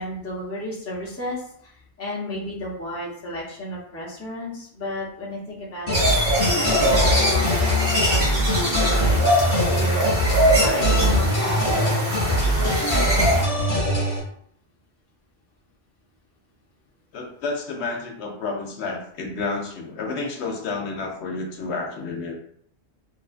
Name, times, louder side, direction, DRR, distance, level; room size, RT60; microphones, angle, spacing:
voice 1, 0.0-1.7 2.0-6.0 6.6-7.4 7.8-9.2 9.6-10.1 10.6-12.8, left 1 dB, 20° left, -4 dB, 0.4 m, -33 dB
sound 1, 5.9-14.2, equal, 35° left, 0.8 m, -22 dB
sound 2, 5.9-13.4, equal, 55° right, 1.2 m, -23 dB
voice 2, 17.1-22.3, left 3 dB, 75° left, 1 dB, 0.9 m, -30 dB
2.6 x 2.2 x 2.4 m, 0.64 s
omnidirectional pair, 1.1 m